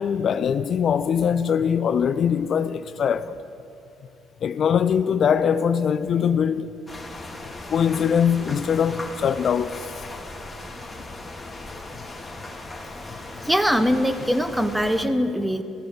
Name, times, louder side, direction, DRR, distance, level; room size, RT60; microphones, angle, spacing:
voice 1, 0.0-3.4 4.4-6.7 7.7-10.1, left 7 dB, 55° left, 0.5 m, -22 dB
sound 1, 6.9-15.1, left 2 dB, 15° left, 1.9 m, -38 dB
voice 2, 13.4-15.6, equal, 5° right, 0.9 m, -22 dB
16.0 x 14.0 x 5.8 m
supercardioid pair, 85°, 0 cm